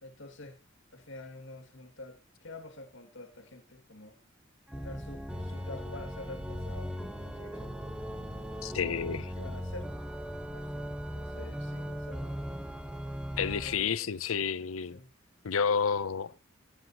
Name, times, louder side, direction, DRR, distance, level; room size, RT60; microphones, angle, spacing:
voice 1, 0.0-0.6 0.9-4.2 4.8-7.8 8.2-9.0 9.4-9.9 10.5-12.4 13.6-14.1 14.4-15.1, left 2 dB, 65° left, 2.4 m, -48 dB
Organ, 4.7-13.9, equal, 5° right, 1.4 m, -38 dB
voice 2, 8.6-9.3 13.4-15.0 15.4-16.4, left 6 dB, 85° left, 0.6 m, -30 dB
17.0 x 10.0 x 3.0 m
head